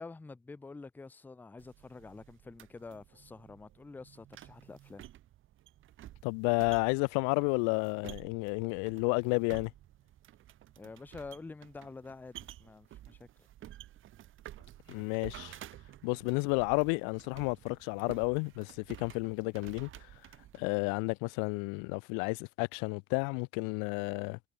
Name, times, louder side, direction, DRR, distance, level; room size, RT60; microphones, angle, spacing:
voice 1, 0.0-5.1 10.8-13.3, left 3 dB, 5° left, 0.4 m, -48 dB
sound 1, 1.6-20.6, right 13 dB, 45° right, 1.1 m, -52 dB
voice 2, 6.2-9.7 14.9-15.6 16.0-19.9 20.6-24.4, left 40 dB or more, 85° left, 0.5 m, -31 dB
cardioid pair, 135°, 29 cm